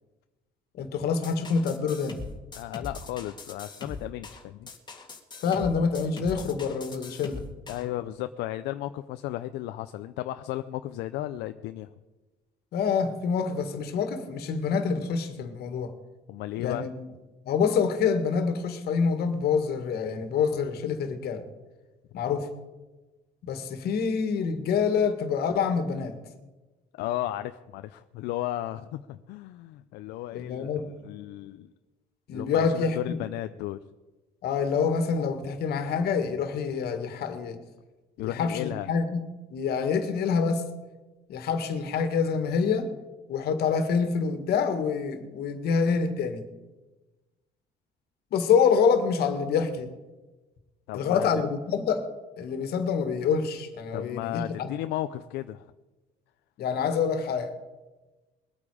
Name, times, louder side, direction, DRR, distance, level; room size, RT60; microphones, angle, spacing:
voice 1, 0.8-2.2 5.4-7.4 12.7-15.9 16.6-17.1 17.5-21.4 22.1-22.5 23.4-26.1 30.3-30.9 32.3-33.2 34.4-37.6 38.2-39.2 39.5-40.6 41.3-42.9 43.3-46.4 48.3-49.9 50.9-52.0 52.4-54.7 56.6-57.5, left 6 dB, 70° left, 8 dB, 1.9 m, -26 dB
sound 1, 1.2-7.9, left 3 dB, 25° left, 1.9 m, -41 dB
voice 2, 2.5-4.7 7.7-11.9 16.3-16.9 27.0-31.7 32.3-33.8 38.2-38.9 50.9-51.3 53.9-55.6, left 14 dB, 90° left, 10 dB, 0.5 m, -34 dB
21.5 x 8.7 x 4.9 m, 1.2 s
cardioid pair, 110°, 17 cm